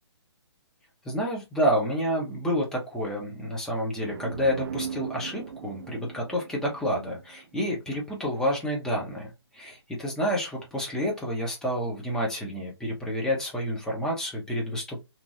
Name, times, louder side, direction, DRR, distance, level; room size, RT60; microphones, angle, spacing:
voice 1, 1.0-15.0, equal, 5° left, -1 dB, 0.8 m, -29 dB
sound 1, 4.0-7.7, right 7 dB, 50° right, 0.4 m, -39 dB
3.0 x 2.6 x 2.6 m, 0.23 s
hypercardioid pair, 150°, 15 cm